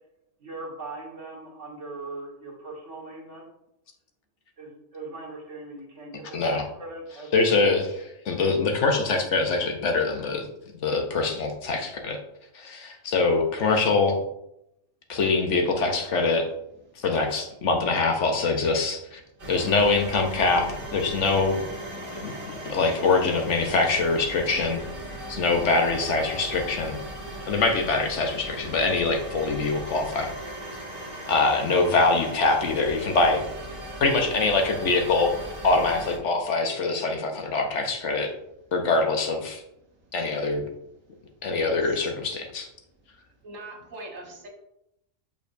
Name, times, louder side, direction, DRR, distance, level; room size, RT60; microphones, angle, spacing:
voice 1, 0.4-3.5 4.6-7.8, right 2 dB, 65° right, -2 dB, 1.9 m, -40 dB
voice 2, 6.3-6.7 7.3-10.5 10.8-12.2 12.5-14.2 15.1-16.5 17.0-19.2 19.5-21.7 22.1-22.3 22.6-24.8 25.3-27.0 27.5-30.3 31.3-33.4 34.0-38.3 38.7-39.6 40.1-40.6 41.4-42.7, left 3 dB, 65° left, 3 dB, 1.2 m, -24 dB
sound 1, 19.4-36.2, right 1 dB, 45° right, 1.7 m, -38 dB
voice 3, 41.1-42.1 43.4-44.5, right 2 dB, 80° right, 0 dB, 1.6 m, -44 dB
6.7 x 5.4 x 2.6 m, 0.80 s
omnidirectional pair, 1.3 m